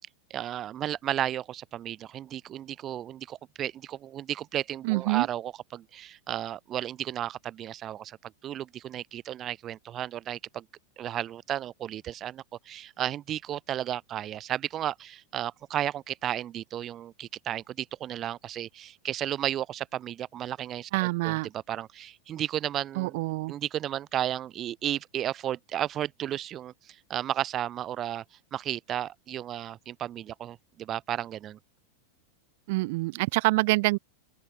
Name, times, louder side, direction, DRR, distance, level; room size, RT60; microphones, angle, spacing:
voice 1, 0.3-10.7 11.0-23.2 23.5-28.2 28.5-31.6, right 11 dB, 30° right, 1.7 m, -33 dB
voice 2, 4.8-5.3 20.9-21.5 23.0-23.5 32.7-34.0, right 23 dB, 50° right, 0.9 m, -26 dB
open air
figure-of-eight pair, 90°, 0 cm